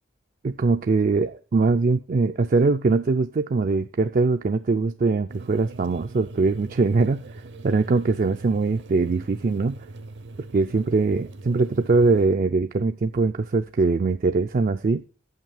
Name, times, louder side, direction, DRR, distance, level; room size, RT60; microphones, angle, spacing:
voice 1, 0.4-7.2 7.6-9.8 10.5-15.0, right 3 dB, 45° right, 0.4 m, -22 dB
sound 1, 5.3-12.3, right 2 dB, 65° right, 0.7 m, -41 dB
8.0 x 5.9 x 6.9 m
head